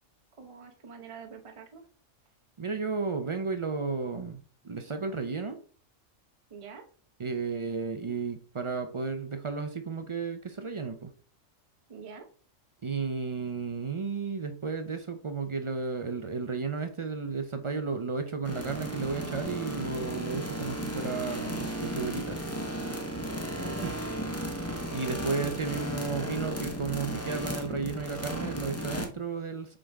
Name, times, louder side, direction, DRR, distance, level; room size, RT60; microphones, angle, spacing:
voice 1, 0.4-1.9 6.5-6.8 11.9-12.3 23.6-24.4, right 5 dB, 30° right, 5 dB, 0.7 m, -46 dB
voice 2, 2.6-4.4 4.6-5.6 7.2-11.1 12.8-22.5 24.9-29.8, right 4 dB, 55° right, 7 dB, 0.3 m, -33 dB
sound 1, 18.5-29.1, equal, 15° left, 0.8 m, -35 dB
7.5 x 4.0 x 3.4 m, 0.43 s
omnidirectional pair, 1.4 m